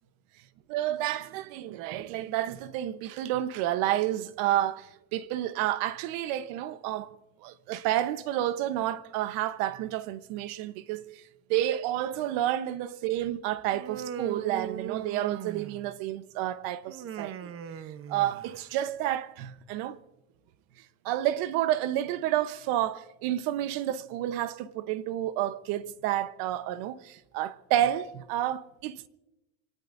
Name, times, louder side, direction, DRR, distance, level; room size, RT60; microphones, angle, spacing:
voice 1, 0.7-7.1 7.4-11.2 11.5-17.5 17.8-20.0 21.0-29.1, right 13 dB, 70° right, 1.0 m, -30 dB
Human voice, 13.7-16.0 16.9-18.7, right 9 dB, 40° right, 0.9 m, -38 dB
27.0 x 19.0 x 2.6 m
cardioid pair, 135°, 36 cm